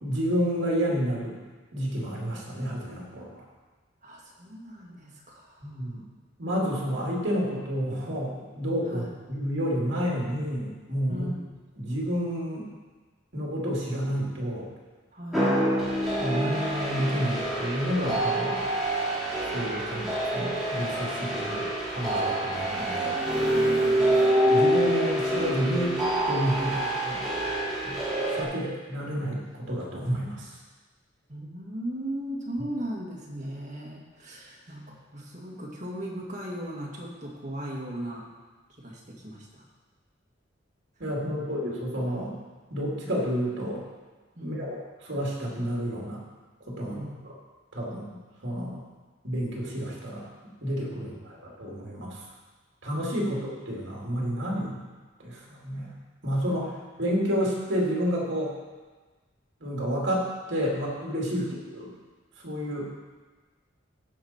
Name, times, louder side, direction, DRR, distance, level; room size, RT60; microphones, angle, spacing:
voice 1, 0.0-1.4 1.7-3.5 5.6-6.1 6.4-11.3 11.8-12.7 13.3-14.7 16.2-18.6 19.5-23.2 24.4-26.0 26.3-27.3 27.8-28.0 28.3-30.6 41.0-42.4 42.7-43.8 44.4-46.2 46.7-47.3 47.7-48.8 49.2-50.2 50.6-52.2 52.8-54.8 55.2-55.9 56.2-58.5 59.6-61.9 62.4-62.9, equal, 60° right, -4 dB, 2.7 m, -30 dB
voice 2, 4.0-5.8 8.9-9.1 11.1-11.4 15.1-15.5 23.9-24.2 31.3-38.3 38.8-39.7 41.3-41.5 44.3-44.7 46.8-47.2 51.0-51.1 53.2-53.3 61.4-61.5, equal, 40° right, -3 dB, 2.0 m, -38 dB
sound 1, 15.3-28.4, right 1 dB, ahead, 2.3 m, -26 dB
16.0 x 5.3 x 4.4 m, 1.3 s
head